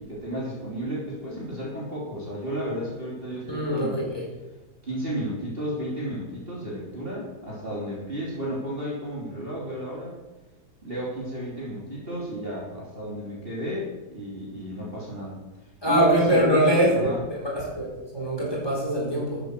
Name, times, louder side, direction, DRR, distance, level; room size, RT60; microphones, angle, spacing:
voice 1, 0.1-4.0 4.8-10.2 10.8-15.4 15.8-17.2, right 1 dB, 35° right, -5 dB, 3.3 m, -32 dB
voice 2, 3.5-4.3 15.8-19.4, right 1 dB, 15° left, -4 dB, 4.9 m, -23 dB
13.5 x 8.2 x 6.6 m, 1.1 s
omnidirectional pair, 1.7 m